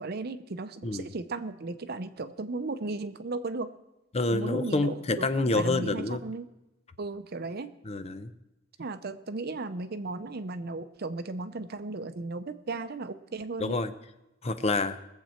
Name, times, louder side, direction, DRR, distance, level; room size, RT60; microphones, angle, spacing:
voice 1, 0.0-3.7 4.3-5.3 5.6-6.5 7.0-7.7 8.8-13.8, right 3 dB, 55° right, 11 dB, 0.7 m, -35 dB
voice 2, 4.1-6.2 7.9-8.3 13.6-13.9 14.4-15.0, left 2 dB, 35° left, 11 dB, 0.7 m, -28 dB
20.5 x 7.7 x 4.4 m, 0.95 s
head